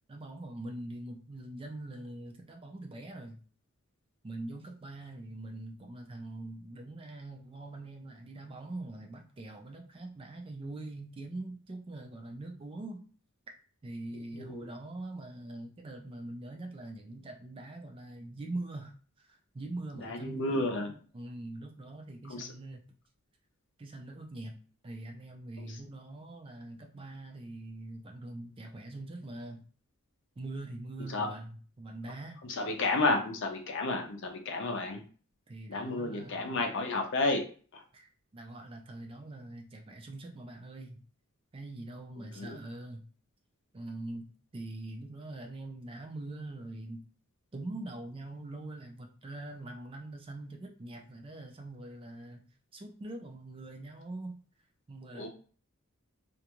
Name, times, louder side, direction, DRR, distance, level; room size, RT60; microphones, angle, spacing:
voice 1, 0.1-3.4 4.2-13.0 13.8-20.4 21.1-22.8 23.8-24.5 24.8-29.6 30.4-32.4 35.5-36.6 37.9-41.1 41.5-43.0 43.7-47.0 47.5-52.4 52.7-54.4 54.9-55.3, right 2 dB, 25° right, 3 dB, 0.3 m, -43 dB
voice 2, 14.1-14.7 20.0-20.9 22.3-22.5 25.6-25.8 31.1-31.3 32.5-35.0 35.7-37.4 37.7-37.8 42.2-42.6 55.1-55.3, left 2 dB, 55° left, 3 dB, 0.6 m, -32 dB
2.5 x 2.2 x 2.9 m, 0.41 s
head